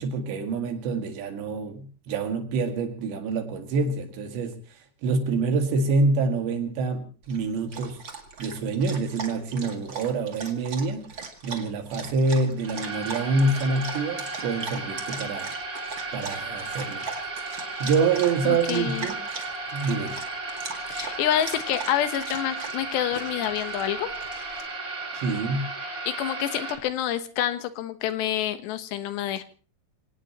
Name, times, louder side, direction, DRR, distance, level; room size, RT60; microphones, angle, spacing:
voice 1, 0.0-4.6 5.0-8.0 8.4-11.1 11.4-15.5 16.1-17.0 17.8-19.2 19.7-20.2 25.1-25.6, right 3 dB, 80° right, 5 dB, 4.4 m, -26 dB
Dog, 7.2-24.6, right 5 dB, 40° right, 1.8 m, -40 dB
sound 1, 12.6-26.8, right 3 dB, 25° right, 2.7 m, -35 dB
voice 2, 18.4-19.1 20.9-24.1 26.1-29.4, left 11 dB, 80° left, 10 dB, 3.3 m, -27 dB
27.0 x 18.0 x 3.0 m, 0.37 s
omnidirectional pair, 5.0 m